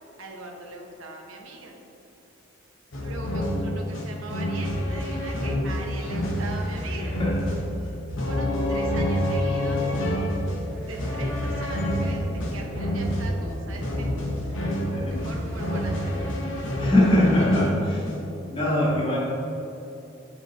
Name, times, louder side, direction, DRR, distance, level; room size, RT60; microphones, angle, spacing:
voice 1, 0.2-1.8 3.0-7.2 8.2-9.9 10.7-14.1 14.4-14.8 15.1-16.1, right 2 dB, 85° right, 1 dB, 0.8 m, -40 dB
sound 1, 2.9-18.3, equal, 70° left, 1.1 m, -28 dB
sound 2, 4.6-16.3, equal, 10° right, 1.4 m, -35 dB
voice 2, 7.0-7.3 14.9-15.3 16.8-18.0 18.5-19.2, left 1 dB, 25° left, -7 dB, 1.3 m, -22 dB
7.9 x 4.6 x 3.2 m, 2.9 s
head